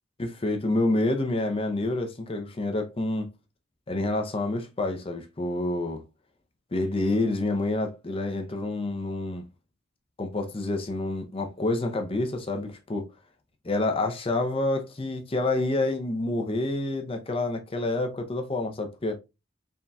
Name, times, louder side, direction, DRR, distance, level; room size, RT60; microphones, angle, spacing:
voice 1, 0.2-3.3 3.9-6.0 6.7-9.4 10.2-13.1 13.6-19.2, left 2 dB, 30° left, 0.6 m, -28 dB
4.0 x 3.5 x 2.3 m
head